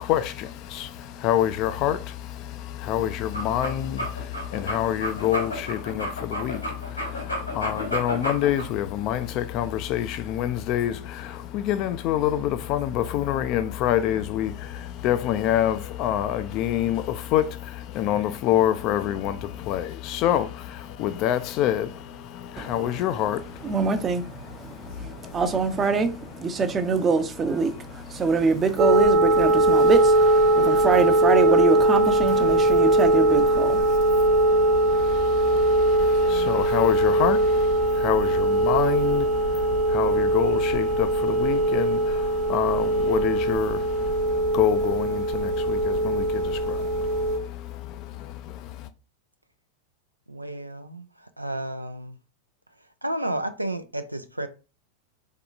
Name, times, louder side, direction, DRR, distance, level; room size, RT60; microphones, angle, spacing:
voice 1, 0.0-26.6 26.9-27.1 27.4-29.0 29.3-29.9 30.5-31.1 31.5-48.9, left 11 dB, 40° left, 0.4 m, -28 dB
sound 1, 3.2-8.7, equal, 90° left, 1.8 m, -31 dB
voice 2, 23.6-33.9, right 4 dB, 20° right, 0.6 m, -25 dB
sound 2, 28.8-47.4, right 1 dB, 45° right, 1.0 m, -21 dB
voice 3, 50.3-51.1 51.4-52.2 53.0-54.5, right 1 dB, 85° right, 0.4 m, -31 dB
3.6 x 3.6 x 2.4 m
figure-of-eight pair, 90°, 0 cm